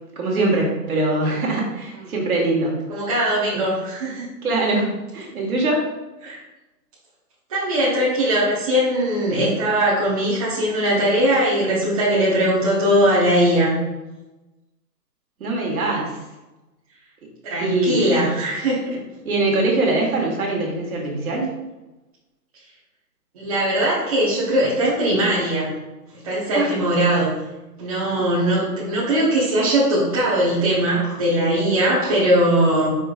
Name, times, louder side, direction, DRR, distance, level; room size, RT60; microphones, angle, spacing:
voice 1, 0.1-2.7 3.5-3.6 4.4-5.8 15.4-16.2 17.6-18.0 19.2-21.5 26.5-26.7, right 2 dB, 55° right, -1 dB, 1.6 m, -22 dB
voice 2, 2.9-4.3 6.2-6.4 7.5-13.8 17.4-19.0 23.3-25.7 26.2-27.3 27.8-33.0, right 1 dB, 20° right, -8 dB, 0.9 m, -20 dB
4.7 x 4.6 x 2.5 m, 1.0 s
hypercardioid pair, 160°, 50 cm